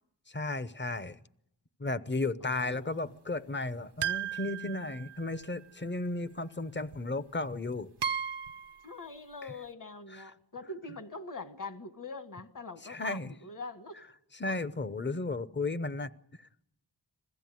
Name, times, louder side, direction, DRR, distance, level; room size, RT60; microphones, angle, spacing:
voice 1, 0.3-1.2 1.8-7.9 12.9-13.3 14.4-16.1, left 2 dB, 25° left, 14 dB, 0.8 m, -34 dB
voice 2, 2.4-3.1 8.8-14.0 14.5-14.6, left 3 dB, 50° left, 9 dB, 1.8 m, -44 dB
sound 1, 4.0-5.5 6.9-7.0 8.0-8.9, right 8 dB, 75° right, 0.8 m, -35 dB
21.5 x 15.5 x 9.3 m, 0.80 s
wide cardioid pair, 75°, 40 cm